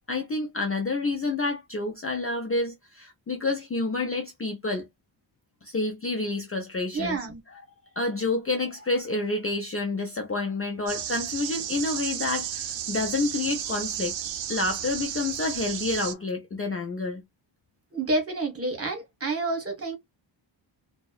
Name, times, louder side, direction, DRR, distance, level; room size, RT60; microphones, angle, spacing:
voice 1, 0.1-4.9 5.6-7.2 7.5-7.6 8.0-14.1 14.5-17.2, left 3 dB, 30° left, 0.4 m, -29 dB
voice 2, 6.9-7.4 17.9-20.0, right 2 dB, 30° right, 1.1 m, -29 dB
sound 1, 10.9-16.1, right 10 dB, 70° right, 0.6 m, -33 dB
2.7 x 2.0 x 2.3 m
wide cardioid pair, 135°, 48 cm